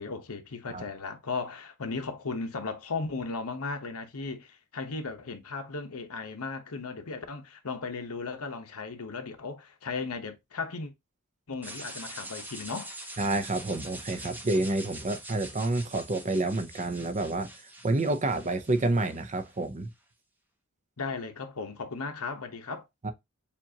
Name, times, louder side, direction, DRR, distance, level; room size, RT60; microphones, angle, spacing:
voice 1, 0.0-10.9 11.5-12.9 21.0-22.8, left 4 dB, 75° left, 1.0 m, -36 dB
sound 1, 11.6-19.6, right 1 dB, 10° right, 0.9 m, -44 dB
voice 2, 13.2-17.5 17.8-19.9 23.0-23.1, right 2 dB, 35° right, 0.7 m, -28 dB
7.2 x 2.5 x 2.8 m
head